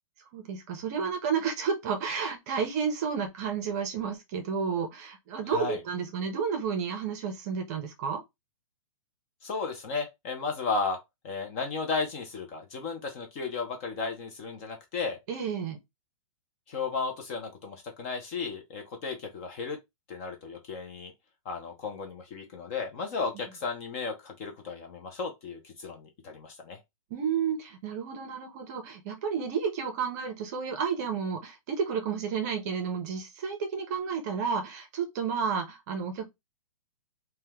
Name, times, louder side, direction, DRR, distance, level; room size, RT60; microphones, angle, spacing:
voice 1, 0.3-8.2 15.3-15.8 27.1-36.3, right 6 dB, 30° right, 0.6 m, -31 dB
voice 2, 5.5-5.8 9.4-11.0 11.2-15.2 16.7-19.8 20.1-21.1 21.5-26.8, left 4 dB, 25° left, 0.5 m, -34 dB
2.9 x 2.2 x 3.4 m
hypercardioid pair, 165°, 18 cm